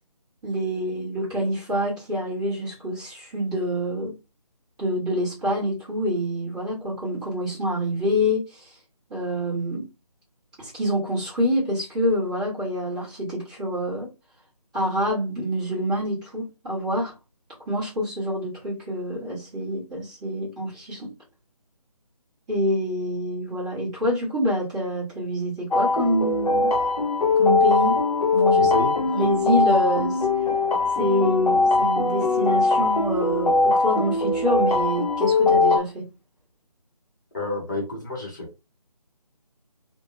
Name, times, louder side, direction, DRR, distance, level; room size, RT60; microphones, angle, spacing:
voice 1, 0.4-4.1 4.8-8.7 9.1-9.8 10.6-14.1 14.7-17.1 17.7-21.1 22.5-26.7 27.4-28.0 28.3-28.7 29.1-30.3 31.0-36.1, equal, 10° right, 1.1 m, -26 dB
sound 1, 25.7-35.8, left 3 dB, 70° left, 0.8 m, -21 dB
voice 2, 28.6-28.9 37.3-38.6, left 1 dB, 30° left, 0.8 m, -30 dB
3.2 x 2.1 x 2.4 m
figure-of-eight pair, 155°, 20 cm